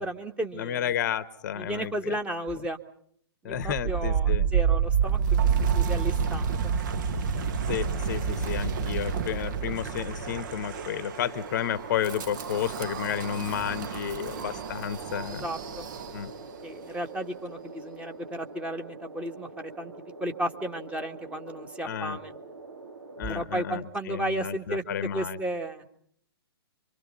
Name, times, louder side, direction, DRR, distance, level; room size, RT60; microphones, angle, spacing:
voice 1, 0.0-0.9 1.5-2.8 3.4-6.6 14.3-14.6 15.4-15.9 16.6-19.5 19.8-19.9 20.2-22.3 23.3-24.8 25.1-25.9, right 1 dB, 10° right, 5 dB, 1.7 m, -34 dB
voice 2, 0.6-2.2 2.5-2.6 3.4-4.5 7.7-15.5 16.1-16.3 21.8-22.2 23.2-25.4, left 9 dB, 45° left, 15 dB, 1.1 m, -32 dB
Wind, 3.5-16.5, right 7 dB, 50° right, 1.8 m, -29 dB
sound 1, 7.8-23.5, right 2 dB, 75° right, 3.4 m, -45 dB
27.0 x 24.5 x 5.5 m, 0.65 s
figure-of-eight pair, 120°, 13 cm